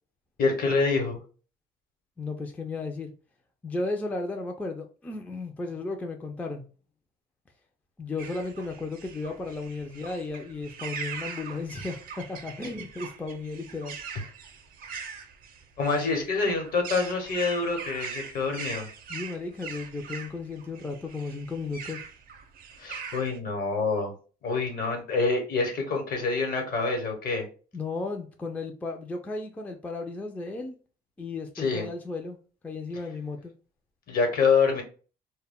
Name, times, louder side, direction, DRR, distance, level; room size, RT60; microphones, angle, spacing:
voice 1, 0.4-1.2 15.8-18.9 22.8-24.1 24.4-27.5 31.6-31.9 34.1-34.8, left 4 dB, 60° left, 1.0 m, -26 dB
voice 2, 2.2-3.1 3.6-6.7 8.0-14.0 19.1-22.0 27.7-30.7 31.2-32.4 32.6-33.5, left 3 dB, 10° left, 0.3 m, -34 dB
sound 1, 8.2-23.4, right 6 dB, 55° right, 0.5 m, -41 dB
2.1 x 2.0 x 3.4 m
cardioid pair, 110°, 17 cm